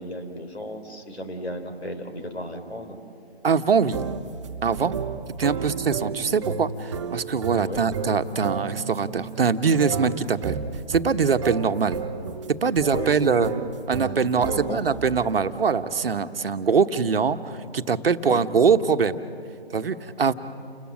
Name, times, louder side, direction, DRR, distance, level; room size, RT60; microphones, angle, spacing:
voice 1, 0.0-3.0 5.5-5.9 7.6-7.9 12.9-13.6 14.2-15.0 18.2-18.5, left 1 dB, 85° left, 6 dB, 4.2 m, -34 dB
voice 2, 3.4-4.0 4.6-5.0 5.4-10.6 10.9-12.0 12.6-13.5 13.9-19.2 19.7-20.3, right 5 dB, 65° right, 9 dB, 1.2 m, -23 dB
sound 1, 3.9-15.1, right 6 dB, 30° right, 0.9 m, -33 dB
30.0 x 19.5 x 7.6 m, 2.4 s
figure-of-eight pair, 150°, 31 cm